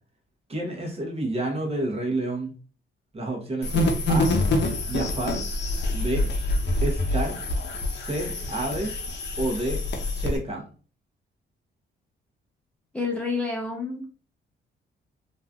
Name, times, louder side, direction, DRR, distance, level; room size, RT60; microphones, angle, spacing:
voice 1, 0.5-2.5 3.1-4.3 4.9-5.5 5.9-6.3 6.8-7.4 8.0-8.9 9.4-9.8 10.1-10.6, right 1 dB, 30° right, 1 dB, 1.0 m, -29 dB
sound 1, 3.6-10.4, left 1 dB, 60° left, 0.7 m, -26 dB
voice 2, 12.9-14.1, left 4 dB, 5° left, -2 dB, 0.6 m, -29 dB
3.0 x 2.5 x 2.3 m, 0.39 s
cardioid pair, 90°, 20 cm